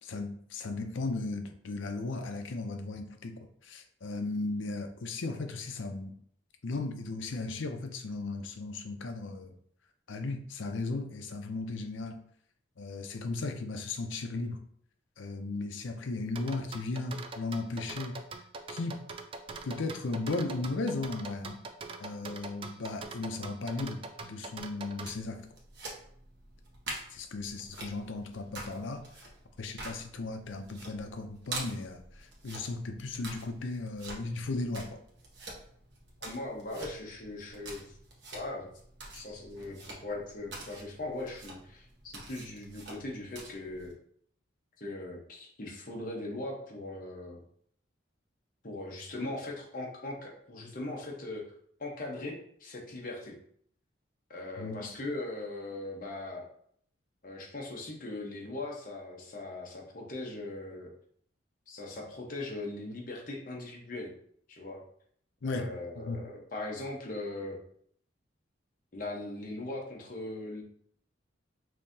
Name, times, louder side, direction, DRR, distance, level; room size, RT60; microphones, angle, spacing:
voice 1, 0.0-6.2 6.6-9.5 10.1-12.2 12.8-14.6 15.2-18.2 18.7-19.0 19.6-21.6 22.0-25.4 27.1-29.1 29.6-35.0 54.6-54.8 65.4-65.7 66.0-66.2, left 3 dB, 85° left, 6 dB, 0.6 m, -36 dB
sound 1, 16.4-25.1, right 4 dB, 30° right, 0.3 m, -42 dB
sound 2, 24.9-43.9, right 2 dB, 70° right, 1.1 m, -47 dB
voice 2, 36.2-38.0 38.3-38.7 39.1-43.9 44.8-47.4 48.6-51.4 51.8-53.4 54.3-56.5 57.2-60.9 61.7-64.1 64.5-64.8 65.5-67.6 68.9-70.6, left 2 dB, 45° left, -1 dB, 1.0 m, -39 dB
5.5 x 2.8 x 2.7 m, 0.64 s
head